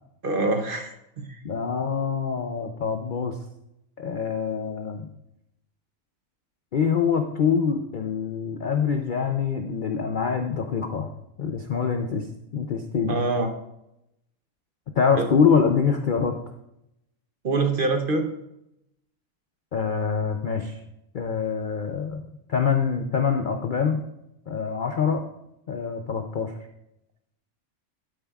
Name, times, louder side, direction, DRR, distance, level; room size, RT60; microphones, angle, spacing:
voice 1, 0.2-0.9 1.3-1.4 13.1-13.5 15.1-15.3 17.4-18.3, right 3 dB, 45° right, 5 dB, 0.8 m, -24 dB
voice 2, 1.4-3.3 4.0-5.1 6.7-11.1 11.4-12.3 12.5-13.1 15.0-16.3 19.7-20.8 21.1-22.2 22.5-24.0 24.5-25.2 25.7-26.5, left 6 dB, 55° left, 5 dB, 0.5 m, -25 dB
12.0 x 9.0 x 2.4 m, 0.83 s
omnidirectional pair, 1.5 m